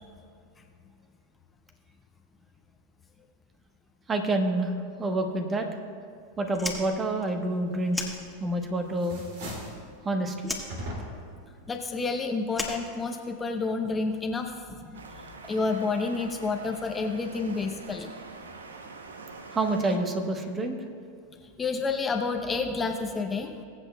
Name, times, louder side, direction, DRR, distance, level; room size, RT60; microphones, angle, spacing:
voice 1, 4.1-4.7 5.0-5.7 6.4-8.0 8.4-9.2 10.0-10.5 19.5-20.8, right 2 dB, 25° right, 5 dB, 1.1 m, -27 dB
Fire, 6.5-8.8 9.0-10.0 10.4-13.6, left 2 dB, 5° left, 1.7 m, -37 dB
sound 1, 8.1-8.6 8.9-9.8 10.7-11.4, equal, 65° right, 2.6 m, -38 dB
voice 2, 11.7-18.1 21.6-23.5, left 4 dB, 20° left, 4 dB, 0.8 m, -30 dB
sound 2, 14.9-20.0, right 4 dB, 85° right, 0.8 m, -45 dB
22.0 x 7.9 x 2.3 m, 2.3 s
hypercardioid pair, 95°, 0 cm